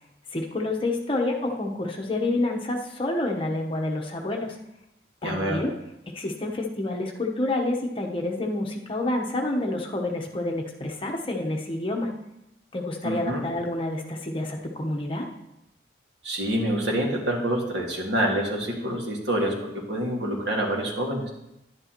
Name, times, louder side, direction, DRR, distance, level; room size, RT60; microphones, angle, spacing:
voice 1, 0.3-4.6 5.2-5.7 6.1-12.1 12.7-15.3, left 2 dB, 30° left, 1 dB, 1.0 m, -28 dB
voice 2, 5.2-5.6 13.0-13.4 16.2-21.3, right 1 dB, 80° right, 0 dB, 1.9 m, -27 dB
10.5 x 9.9 x 3.0 m, 0.87 s
head